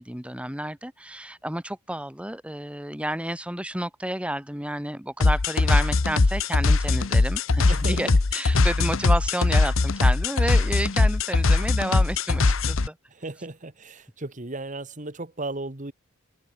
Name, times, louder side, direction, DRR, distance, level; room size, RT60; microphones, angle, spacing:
voice 1, 0.0-13.0, right 1 dB, 5° right, 2.5 m, -31 dB
sound 1, 5.2-12.9, left 3 dB, 65° left, 0.9 m, -21 dB
voice 2, 7.7-8.0 13.1-15.9, right 2 dB, 35° right, 1.6 m, -35 dB
head